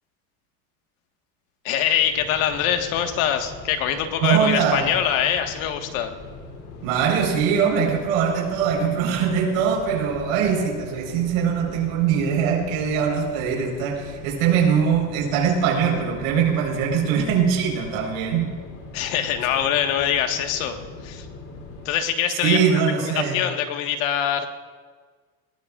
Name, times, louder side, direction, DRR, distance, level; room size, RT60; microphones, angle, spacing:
voice 1, 1.6-6.1 18.9-20.8 21.0-21.3 21.8-24.5, left 9 dB, 90° left, 5 dB, 1.7 m, -24 dB
sound 1, 2.0-21.9, left 3 dB, 55° left, 3.3 m, -41 dB
voice 2, 4.2-4.9 6.8-18.5 22.4-23.4, right 7 dB, 85° right, 1 dB, 4.5 m, -22 dB
20.5 x 18.5 x 2.5 m, 1.5 s
cardioid pair, 175°, 40 cm